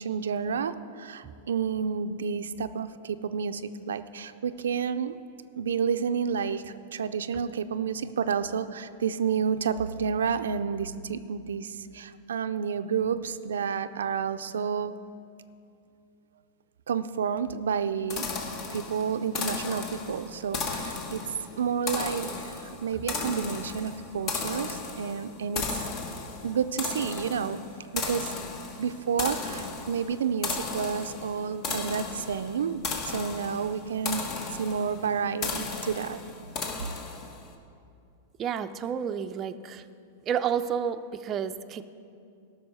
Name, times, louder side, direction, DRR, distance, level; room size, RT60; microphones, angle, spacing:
voice 1, 0.0-5.1 5.6-14.9 16.9-18.3 18.7-21.2 21.6-25.8 26.4-27.6 27.9-28.3 28.8-34.2 34.5-36.2, right 7 dB, 90° right, 10 dB, 0.4 m, -30 dB
sound 1, 18.1-37.5, left 4 dB, 40° left, 1.3 m, -35 dB
voice 2, 38.4-39.8 40.3-41.9, right 8 dB, 30° right, 9 dB, 0.4 m, -30 dB
13.0 x 6.2 x 6.4 m, 2.5 s
hypercardioid pair, 125°, 0 cm